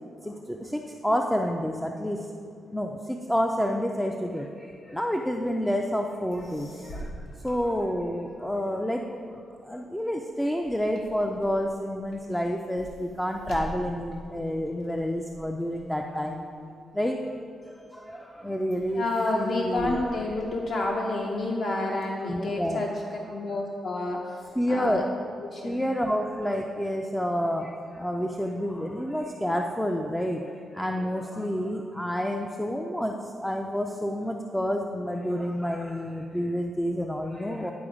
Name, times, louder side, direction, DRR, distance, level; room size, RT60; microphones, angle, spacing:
voice 1, 0.2-2.3 2.7-16.4 16.9-17.4 17.6-19.0 19.3-20.0 22.2-22.8 24.6-25.1 25.6-37.7, equal, 5° left, 2 dB, 0.3 m, -29 dB
sound 1, 6.3-8.4 8.9-17.5 18.0-18.4 18.7-21.2 21.7-22.7, right 1 dB, 75° left, 1.5 m, -46 dB
voice 2, 18.9-22.9 23.3-25.0 25.4-25.8, left 2 dB, 55° left, -1 dB, 0.6 m, -29 dB
10.0 x 4.2 x 4.9 m, 2.4 s
wide cardioid pair, 160°, 0 cm